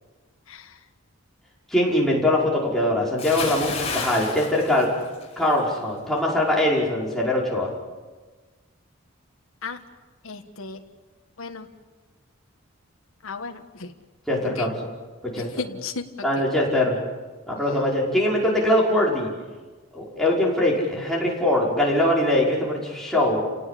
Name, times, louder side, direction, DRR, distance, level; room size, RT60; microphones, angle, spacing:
voice 1, 1.7-4.9 5.4-7.7 14.3-14.9 15.2-15.6 16.2-17.0 17.5-19.3 19.9-23.4, left 1 dB, ahead, -5 dB, 5.4 m, -22 dB
Bathtub (filling or washing) / Splash splatter, 3.2-5.6 5.9-6.2, left 4 dB, 30° left, 5.6 m, -31 dB
voice 2, 10.2-10.8 11.4-11.7 13.2-13.9 14.6-14.7 15.6-16.0, left 4 dB, 70° left, 5 dB, 1.5 m, -34 dB
30.0 x 18.0 x 8.4 m, 1.3 s
head